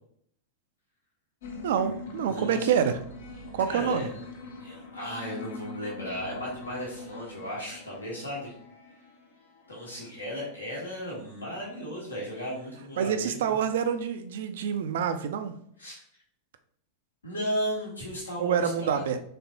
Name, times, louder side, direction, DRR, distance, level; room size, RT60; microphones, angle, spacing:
sound 1, 1.4-10.4, left 3 dB, 60° left, 0.6 m, -43 dB
voice 1, 1.6-3.0 3.5-4.1 13.0-15.6 18.4-19.2, right 8 dB, 55° right, 9 dB, 0.4 m, -27 dB
voice 2, 2.3-2.7 3.6-4.2 4.6-8.5 9.7-13.5 15.8-16.0 17.2-19.1, equal, 75° left, -4 dB, 1.2 m, -35 dB
4.2 x 3.2 x 2.7 m, 0.67 s
figure-of-eight pair, 90°, 0 cm